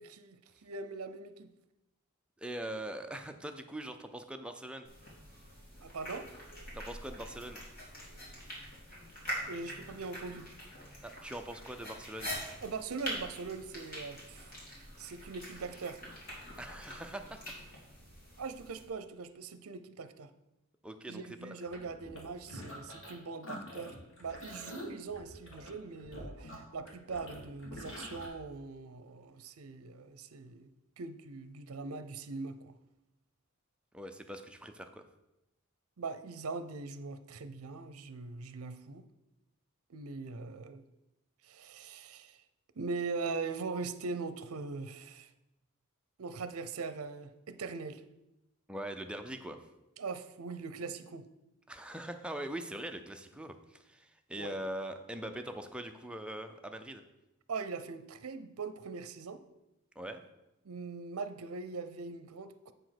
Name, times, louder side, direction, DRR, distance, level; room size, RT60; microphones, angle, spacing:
voice 1, 0.0-1.5 5.8-6.3 9.5-10.5 12.6-16.0 18.4-20.3 21.1-23.9 24.2-30.7 31.0-32.8 36.0-39.1 39.9-40.8 41.4-42.4 42.8-45.3 46.2-48.0 50.0-51.2 54.4-54.6 57.5-59.4 60.6-62.7, right 4 dB, 75° right, 11 dB, 0.6 m, -41 dB
voice 2, 2.4-4.9 6.7-7.6 11.0-12.4 16.6-17.4 20.8-21.6 33.9-35.1 48.7-49.7 51.7-57.0 60.0-60.3, right 1 dB, 5° right, 6 dB, 0.5 m, -42 dB
sound 1, 4.8-18.8, equal, 40° left, 2.7 m, -45 dB
sound 2, 21.6-23.1 23.4-28.3, equal, 60° left, 2.1 m, -46 dB
7.8 x 5.0 x 5.9 m, 0.93 s
head